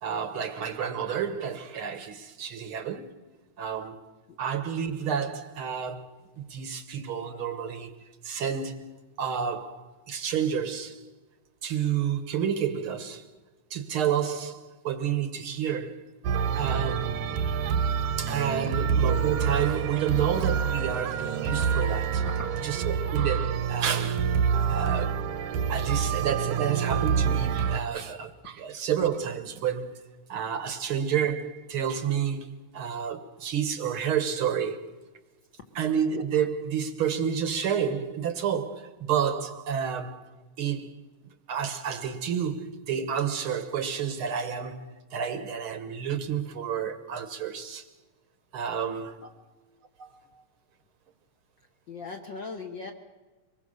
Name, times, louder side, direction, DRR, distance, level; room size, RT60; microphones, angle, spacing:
voice 1, 0.0-3.2 3.6-4.1 4.4-6.1 6.4-7.9 8.2-11.0 11.6-13.3 13.7-16.1 16.5-17.2 18.2-22.3 22.6-24.4 24.7-25.2 25.7-30.0 30.3-34.9 35.7-40.3 40.6-40.9 41.5-47.9 48.5-49.2 50.0-50.2, right 8 dB, 55° right, 1.6 m, -30 dB
sound 1, 16.2-27.8, right 7 dB, 75° right, 2.5 m, -27 dB
voice 2, 51.9-52.9, left 4 dB, 50° left, 1.5 m, -39 dB
24.5 x 21.0 x 6.5 m
omnidirectional pair, 3.6 m